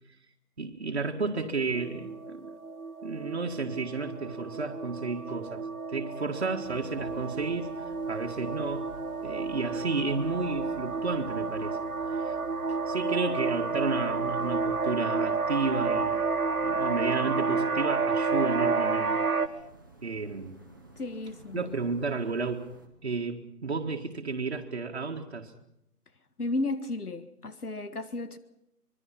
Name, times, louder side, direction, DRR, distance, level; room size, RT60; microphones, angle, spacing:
voice 1, 0.6-2.5 3.0-7.7 8.1-8.9 9.2-11.8 12.1-12.4 12.9-16.2 16.6-19.3 20.0-20.6 21.5-22.7 23.0-25.5, right 3 dB, 45° right, 1.8 m, -32 dB
sound 1, 1.7-19.5, right 4 dB, 65° right, 1.9 m, -31 dB
sound 2, 6.6-22.9, right 2 dB, 15° right, 1.2 m, -51 dB
voice 2, 21.0-21.7 26.4-28.4, left 2 dB, 75° left, 1.8 m, -33 dB
25.5 x 22.5 x 5.8 m
figure-of-eight pair, 175°, 46 cm